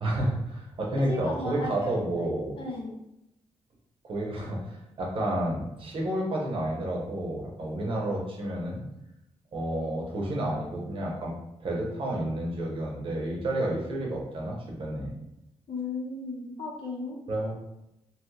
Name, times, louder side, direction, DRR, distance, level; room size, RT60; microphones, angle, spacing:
voice 1, 0.0-2.5 4.0-8.8 9.5-11.3 11.6-15.1 17.3-17.6, right 1 dB, 50° right, -3 dB, 0.8 m, -30 dB
voice 2, 1.1-2.3 2.6-2.9 15.7-17.2, left 3 dB, 50° left, -2 dB, 0.8 m, -35 dB
3.1 x 2.3 x 3.1 m, 0.84 s
wide cardioid pair, 150°, 11 cm